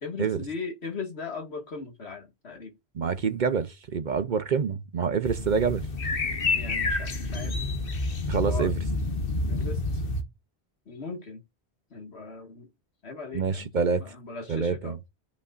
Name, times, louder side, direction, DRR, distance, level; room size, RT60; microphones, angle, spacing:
voice 1, 0.0-2.7 6.5-7.6 8.4-8.7 9.5-10.0 10.9-11.4 11.9-12.7 13.0-13.7 14.0-15.0, left 4 dB, 70° left, 2.2 m, -38 dB
voice 2, 2.9-5.9 8.3-8.8 13.3-14.0 14.5-15.0, right 6 dB, 50° right, 0.7 m, -26 dB
sound 1, 5.2-10.2, left 2 dB, 55° left, 1.4 m, -28 dB
13.5 x 5.3 x 2.5 m
omnidirectional pair, 1.1 m